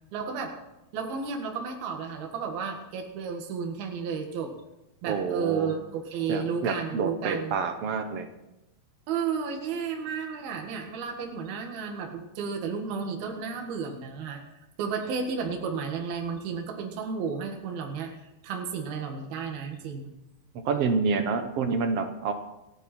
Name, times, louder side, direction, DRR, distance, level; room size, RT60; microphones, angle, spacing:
voice 1, 0.1-0.6 0.9-4.6 5.0-7.6 9.1-14.4 14.8-18.1 18.4-20.1, right 6 dB, 70° right, 2 dB, 3.6 m, -32 dB
voice 2, 5.1-5.7 6.3-8.3 20.6-22.3, right 5 dB, 90° right, 6 dB, 1.3 m, -28 dB
28.0 x 11.0 x 4.4 m, 0.93 s
omnidirectional pair, 4.6 m